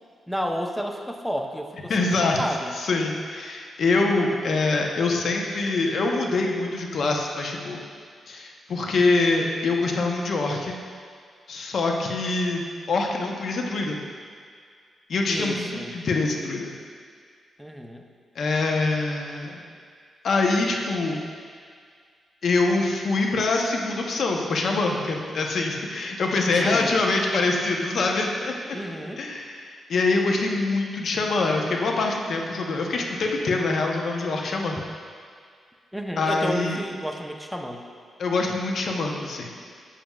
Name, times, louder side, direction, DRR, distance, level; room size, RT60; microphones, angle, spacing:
voice 1, 0.3-2.1 2.4-2.8 15.3-16.0 17.6-18.1 26.6-27.0 28.7-29.3 35.9-37.8 38.4-38.5, equal, ahead, 3 dB, 0.7 m, -31 dB
voice 2, 1.9-2.4 2.7-7.8 8.3-10.8 11.5-14.0 15.1-16.7 18.4-19.6 20.2-21.2 22.4-28.5 29.2-34.8 36.2-36.8 38.2-39.5, left 3 dB, 65° left, 1 dB, 0.8 m, -24 dB
8.4 x 7.3 x 2.3 m, 2.1 s
cardioid pair, 70°, 0 cm